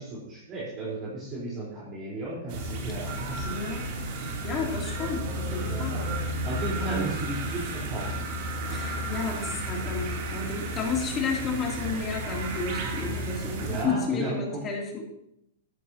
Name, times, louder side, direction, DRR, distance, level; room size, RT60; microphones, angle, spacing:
voice 1, 0.0-3.6 5.6-5.9 6.4-8.3 13.6-14.6, right 2 dB, 30° right, -6 dB, 4.2 m, -34 dB
sound 1, 2.5-13.8, right 1 dB, 50° right, 3.0 m, -33 dB
voice 2, 3.5-3.9 4.4-6.1 6.8-7.1 8.7-15.1, left 4 dB, 25° left, -1 dB, 3.0 m, -32 dB
13.0 x 12.5 x 2.9 m, 0.78 s
hypercardioid pair, 135°, 0 cm